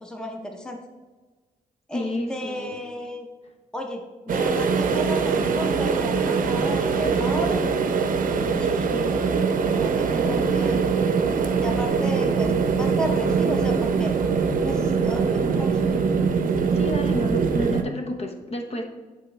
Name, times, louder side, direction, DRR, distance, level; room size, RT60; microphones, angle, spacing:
voice 1, 0.0-0.8 1.9-3.3 3.7-7.6 8.6-9.2 9.7-10.8 11.1-14.1 14.6-16.0, equal, 5° left, 3 dB, 0.8 m, -33 dB
voice 2, 1.9-2.8 16.7-18.8, left 1 dB, 45° left, 4 dB, 0.9 m, -30 dB
sound 1, 4.3-17.8, right 5 dB, 70° right, 0.7 m, -22 dB
10.5 x 3.5 x 3.2 m, 1.3 s
cardioid pair, 85°, 15 cm